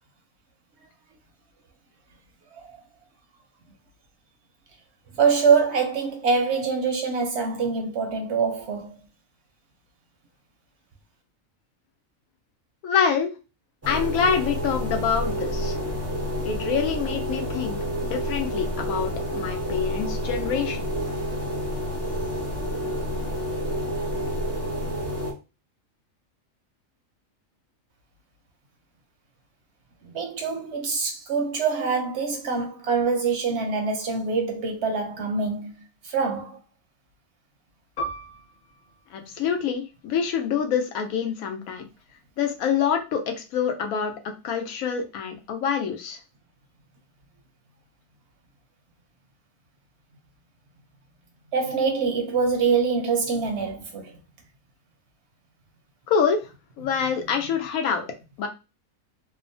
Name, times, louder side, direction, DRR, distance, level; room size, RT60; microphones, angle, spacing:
voice 1, 5.1-9.0 30.0-36.6 51.5-54.2, right 5 dB, 65° right, 0.7 m, -25 dB
voice 2, 12.8-13.3 13.9-15.7 16.4-17.8 18.0-20.9 39.1-41.8 42.4-44.1 44.4-46.2 56.1-56.4 56.8-58.0 58.4-58.5, left 7 dB, 90° left, 1.1 m, -26 dB
sound 1, 13.8-25.3, equal, 25° right, 0.3 m, -29 dB
Piano, 38.0-43.0 43.3-43.5 44.3-44.6, right 1 dB, 45° left, 0.7 m, -40 dB
2.8 x 2.0 x 2.6 m
omnidirectional pair, 1.4 m